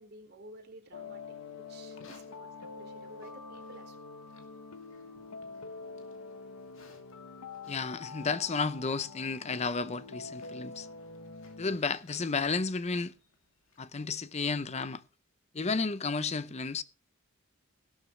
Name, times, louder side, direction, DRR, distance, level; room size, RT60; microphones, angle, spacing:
voice 1, 0.0-1.4 1.7-4.0 5.1-5.2, right 1 dB, 50° right, 4.1 m, -52 dB
sound 1, 0.9-11.8, left 4 dB, 85° left, 0.9 m, -46 dB
Livestock farm animals working animals, 1.8-14.0, left 3 dB, 60° left, 2.4 m, -62 dB
voice 2, 7.7-10.9 11.6-13.1 13.8-15.0 15.5-16.8, left 4 dB, 30° left, 0.6 m, -32 dB
16.5 x 12.0 x 3.2 m
head